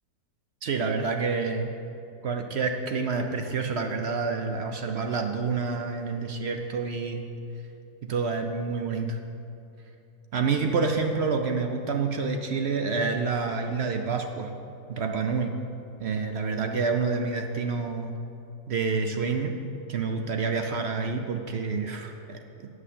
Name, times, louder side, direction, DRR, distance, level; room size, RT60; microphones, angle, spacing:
voice 1, 0.6-1.7 2.2-7.3 8.0-9.2 10.3-14.5 14.9-15.5 16.0-18.1 18.7-19.5 19.9-22.8, right 4 dB, 65° right, 5 dB, 0.6 m, -28 dB
9.4 x 6.4 x 7.6 m, 2.8 s
omnidirectional pair, 1.8 m